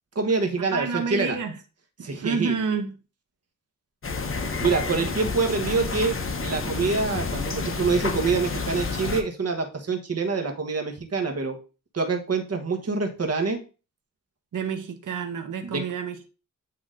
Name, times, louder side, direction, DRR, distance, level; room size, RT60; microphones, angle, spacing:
voice 1, 0.1-1.4 2.0-2.6 4.6-6.1 6.4-11.6 11.9-13.6 15.6-15.8, right 4 dB, 45° right, 1.3 m, -26 dB
voice 2, 0.7-1.6 2.0-2.9 14.5-16.3, right 6 dB, 65° right, 0.9 m, -29 dB
sound 1, 4.0-9.2, left 4 dB, 40° left, 0.9 m, -29 dB
8.6 x 3.0 x 3.8 m
wide cardioid pair, 85°, 33 cm